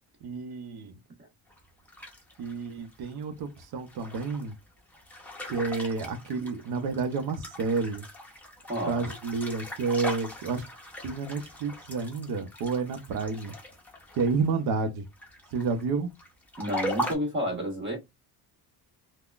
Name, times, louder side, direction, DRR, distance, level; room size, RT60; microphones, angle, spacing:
voice 1, 0.2-1.0 2.4-4.5 5.5-8.0 8.8-10.6 11.0-13.5 14.1-15.0 15.5-16.1, right 4 dB, 65° right, 0.7 m, -30 dB
sound 1, 1.5-14.9 15.1-17.1, equal, 5° left, 0.8 m, -39 dB
voice 2, 8.7-9.1 16.6-18.0, equal, 25° right, 1.2 m, -30 dB
3.7 x 2.2 x 2.4 m
cardioid pair, 175°, 41 cm